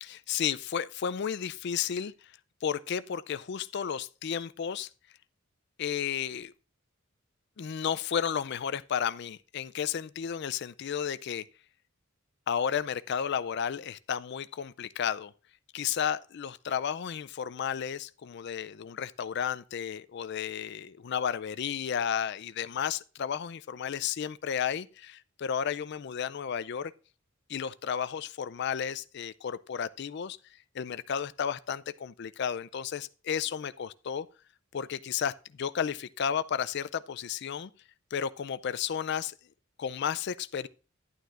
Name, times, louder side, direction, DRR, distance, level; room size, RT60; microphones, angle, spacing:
voice 1, 0.0-2.1 2.6-4.9 5.8-6.5 7.6-11.4 12.5-15.3 15.7-26.9 27.5-30.4 30.7-34.3 34.7-37.7 38.1-39.3 39.8-40.7, left 8 dB, 55° left, 0.4 m, -33 dB
11.5 x 11.0 x 2.5 m
head